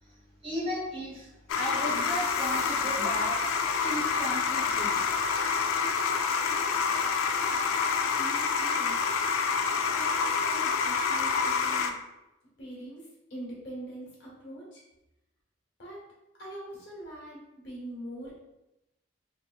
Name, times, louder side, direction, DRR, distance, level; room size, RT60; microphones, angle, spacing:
voice 1, 0.0-3.4 3.8-5.1, equal, 30° right, -5 dB, 0.9 m, -35 dB
sound 1, 1.5-11.9, left 5 dB, 85° left, 0.3 m, -27 dB
voice 2, 8.2-9.0 9.5-12.0 12.6-14.8 15.8-16.0 16.4-18.3, right 1 dB, 60° left, -6 dB, 1.1 m, -43 dB
3.5 x 2.7 x 2.3 m, 0.93 s
head